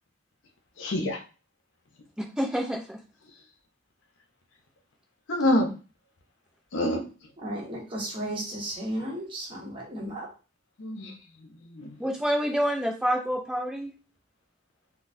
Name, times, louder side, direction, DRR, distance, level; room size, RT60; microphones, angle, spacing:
voice 1, 0.8-1.2 5.3-5.7 6.7-7.0 10.8-11.1 11.4-12.0, left 1 dB, 75° left, 3 dB, 0.7 m, -27 dB
voice 2, 2.2-3.0 12.0-13.9, equal, 5° right, 1 dB, 0.5 m, -27 dB
voice 3, 7.4-10.3, right 1 dB, 25° right, -3 dB, 1.0 m, -34 dB
3.9 x 2.2 x 2.6 m, 0.34 s
head